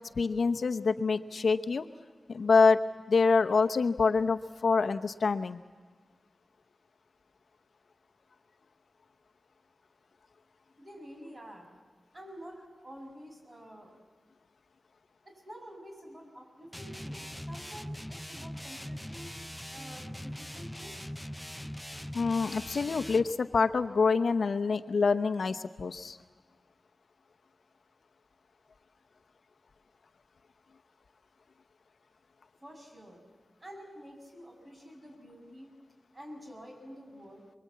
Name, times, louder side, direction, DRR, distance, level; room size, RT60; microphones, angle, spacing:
voice 1, 0.2-1.8 2.3-2.8 3.1-5.6 22.1-26.2, left 4 dB, 70° left, 8 dB, 0.9 m, -26 dB
voice 2, 10.8-11.7 12.1-13.9 15.3-19.3 19.7-21.1 32.6-33.2 33.6-35.8 36.1-37.6, equal, 30° right, 2 dB, 6.9 m, -49 dB
sound 1, 16.7-23.3, equal, 5° left, 0.8 m, -41 dB
28.5 x 22.0 x 8.5 m, 1.4 s
wide cardioid pair, 85°, 0 cm